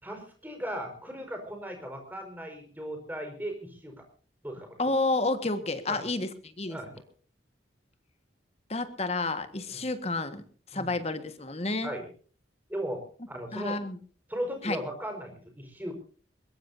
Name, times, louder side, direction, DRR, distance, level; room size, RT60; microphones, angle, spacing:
voice 1, 0.0-4.0 4.4-4.8 5.9-6.0 6.7-6.9 9.7-9.8 10.7-10.9 11.8-12.1 12.7-13.8 14.3-15.9, equal, 10° right, 3 dB, 4.8 m, -37 dB
voice 2, 4.8-6.8 8.7-10.4 10.7-11.9 13.5-14.0 14.6-14.8, left 2 dB, 35° left, 10 dB, 1.6 m, -30 dB
21.5 x 21.5 x 2.7 m, 0.39 s
head